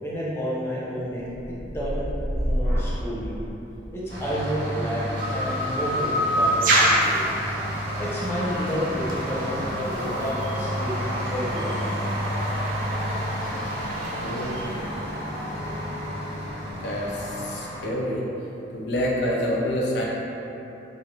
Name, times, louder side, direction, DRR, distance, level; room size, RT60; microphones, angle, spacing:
voice 1, 0.0-1.3 1.7-2.0 2.4-3.4 3.9-7.2 8.0-11.9, equal, 15° left, -7 dB, 0.4 m, -30 dB
sound 1, 1.2-9.1 9.5-10.0, equal, 35° left, 0.9 m, -32 dB
sound 2, 4.1-17.9, equal, 75° right, 1.4 m, -31 dB
sound 3, 5.2-14.7, right 1 dB, 45° right, 0.4 m, -28 dB
voice 2, 14.2-14.5 16.8-18.3 18.7-20.0, equal, 65° left, -4 dB, 0.5 m, -27 dB
3.1 x 2.4 x 2.7 m, 3.0 s
head